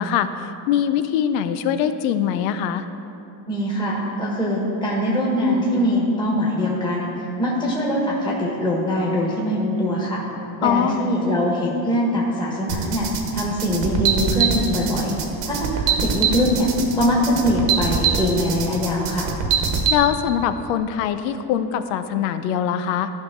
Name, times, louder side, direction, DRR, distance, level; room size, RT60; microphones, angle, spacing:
voice 1, 0.0-2.9 10.6-11.0 19.9-23.1, left 9 dB, 90° left, 10 dB, 0.7 m, -22 dB
voice 2, 3.5-10.2 10.6-13.1 13.3-15.1 15.4-19.3, equal, 10° left, -5 dB, 1.6 m, -22 dB
sound 1, 12.7-20.0, right 7 dB, 65° right, 1.3 m, -23 dB
14.0 x 5.5 x 3.8 m, 2.8 s
cardioid pair, 120°, 48 cm